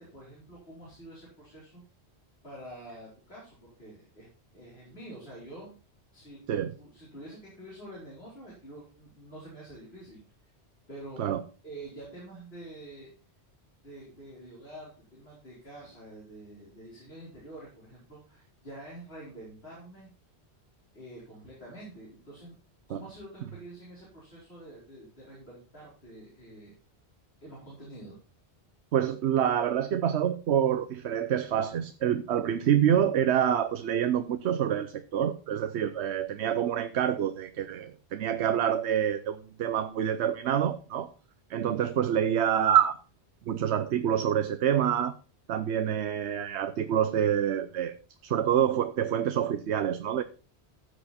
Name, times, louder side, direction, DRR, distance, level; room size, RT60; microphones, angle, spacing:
voice 1, 0.0-1.8 2.4-4.3 4.5-5.7 6.1-6.4 6.8-10.2 10.9-11.2 11.6-13.1 13.8-20.1 20.9-22.5 22.9-26.7 27.4-28.2, right 1 dB, 65° left, 4.8 m, -47 dB
voice 2, 28.9-41.1 41.5-43.0 43.5-45.1 45.5-47.9 48.2-50.2, right 9 dB, 80° right, 1.0 m, -27 dB
15.0 x 6.5 x 4.3 m
omnidirectional pair, 1.1 m